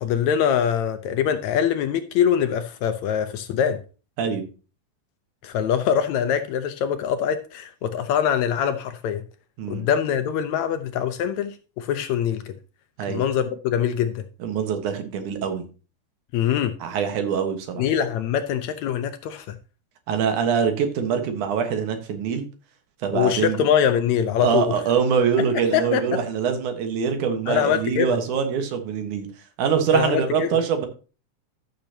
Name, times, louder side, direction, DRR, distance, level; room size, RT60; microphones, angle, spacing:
voice 1, 0.0-3.8 5.4-9.2 9.7-12.6 13.1-14.2 16.3-16.7 17.8-19.6 23.1-24.7 25.7-26.2 27.5-28.2 29.9-30.6, left 9 dB, 75° left, 1.8 m, -23 dB
voice 2, 14.4-15.6 16.8-17.9 20.1-22.4 23.0-23.6 24.4-29.3 29.6-30.9, right 7 dB, 75° right, 2.8 m, -24 dB
13.5 x 6.7 x 2.8 m
omnidirectional pair, 3.6 m